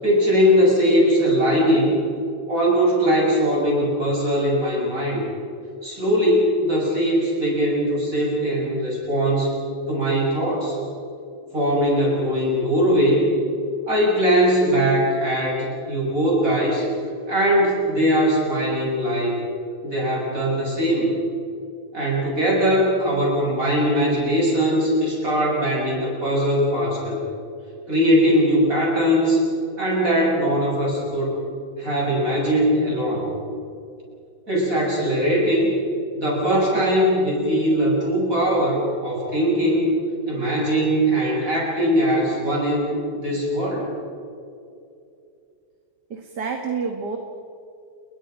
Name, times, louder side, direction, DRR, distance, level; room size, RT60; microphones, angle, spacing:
voice 1, 0.0-2.0 2.5-5.2 5.8-10.8 11.5-13.3 13.9-16.9 17.3-19.4 19.8-21.1 21.9-27.2 27.9-29.4 29.8-31.4 31.8-33.3 34.5-35.7 36.1-40.0 40.3-43.9, equal, 40° right, -3 dB, 7.7 m, -20 dB
voice 2, 46.1-47.2, right 5 dB, 55° right, 3 dB, 2.2 m, -28 dB
30.0 x 22.0 x 5.2 m, 2.5 s
omnidirectional pair, 2.2 m